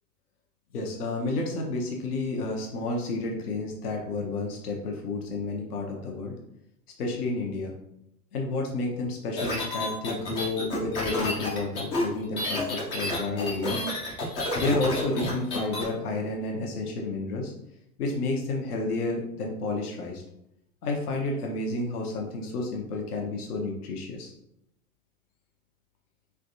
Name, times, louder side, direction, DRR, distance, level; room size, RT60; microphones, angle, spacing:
voice 1, 0.7-6.3 7.0-7.7 8.3-13.9 14.6-17.5 18.0-20.2 20.8-24.3, left 2 dB, 70° left, 0 dB, 0.8 m, -30 dB
sound 1, 9.4-15.9, left 1 dB, 15° left, 0.3 m, -30 dB
3.4 x 3.2 x 2.6 m, 0.80 s
figure-of-eight pair, 95°, 47 cm